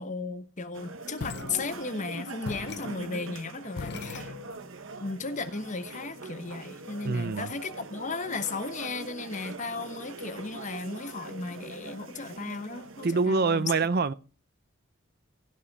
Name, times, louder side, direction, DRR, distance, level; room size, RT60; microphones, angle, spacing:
voice 1, 0.0-4.3 5.0-13.7, left 3 dB, 35° left, 1.0 m, -35 dB
sound 1, 0.7-13.3, right 2 dB, 65° right, 1.2 m, -43 dB
sound 2, 1.2-2.1 2.4-4.8, left 4 dB, 55° left, 0.5 m, -40 dB
voice 2, 7.0-7.5 13.0-14.1, right 4 dB, 45° right, 0.5 m, -25 dB
16.5 x 5.7 x 4.1 m
head